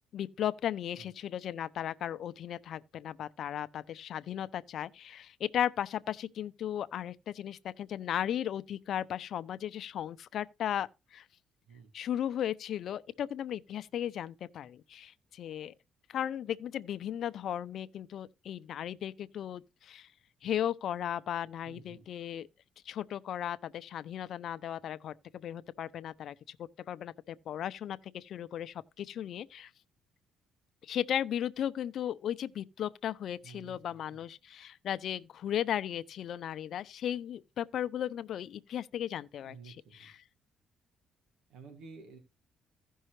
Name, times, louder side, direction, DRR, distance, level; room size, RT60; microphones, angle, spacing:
voice 1, 0.1-11.3 11.9-15.7 16.1-20.1 20.4-22.5 22.9-29.7 30.8-40.2, left 10 dB, 65° left, 0.6 m, -36 dB
voice 2, 21.6-22.1 33.4-34.2 39.4-40.1 41.5-42.2, right 5 dB, 85° right, 2.0 m, -52 dB
15.5 x 5.5 x 3.1 m
cardioid pair, 100°, 0 cm